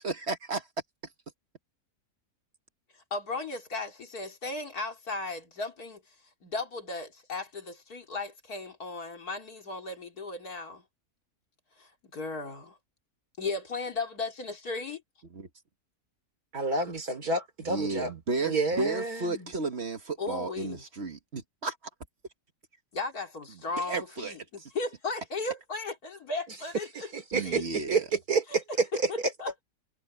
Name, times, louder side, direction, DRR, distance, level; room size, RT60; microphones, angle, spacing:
voice 1, 0.0-0.6 15.3-15.5 17.6-21.8 23.8-24.7 27.3-28.1, right 3 dB, 45° right, 1.6 m, -33 dB
voice 2, 3.1-6.0 6.4-10.8 11.8-12.8 13.4-15.0 20.2-20.8 22.9-27.1 27.4-27.6 28.5-28.6 29.1-29.5, left 3 dB, 75° left, 3.5 m, -36 dB
voice 3, 16.5-18.1 18.4-19.5 27.0-28.4 28.8-29.1, right 3 dB, 70° right, 4.1 m, -29 dB
omnidirectional pair, 1.6 m